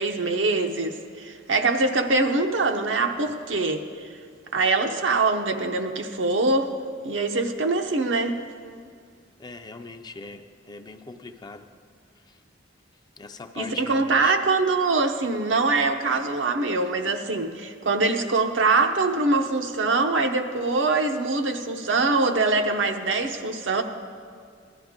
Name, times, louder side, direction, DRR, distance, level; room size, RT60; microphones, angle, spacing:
voice 1, 0.0-4.1 4.5-6.7 7.0-8.4 13.6-23.8, right 3 dB, 80° right, 5 dB, 0.8 m, -23 dB
voice 2, 9.4-11.7 12.2-12.4 13.2-14.4, left 4 dB, 20° left, 7 dB, 0.4 m, -40 dB
16.0 x 12.0 x 3.7 m, 2.1 s
head